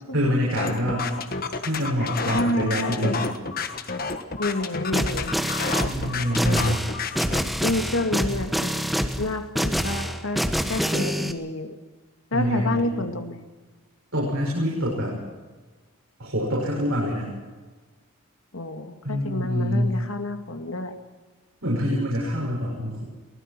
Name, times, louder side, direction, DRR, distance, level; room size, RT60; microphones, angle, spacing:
voice 1, 0.1-1.1 1.6-3.3 5.8-6.9 12.3-13.0 14.1-15.1 16.2-17.3 19.0-20.0 21.6-23.0, equal, 70° right, -4 dB, 7.0 m, -25 dB
sound 1, 0.6-7.4, left 4 dB, 45° left, 1.5 m, -30 dB
voice 2, 2.3-3.2 4.4-5.3 7.6-11.8 12.3-13.4 18.5-20.9, left 2 dB, 70° left, 6 dB, 2.3 m, -29 dB
sound 2, 4.9-11.3, equal, ahead, 1.3 m, -26 dB
23.0 x 20.5 x 6.2 m, 1.3 s
head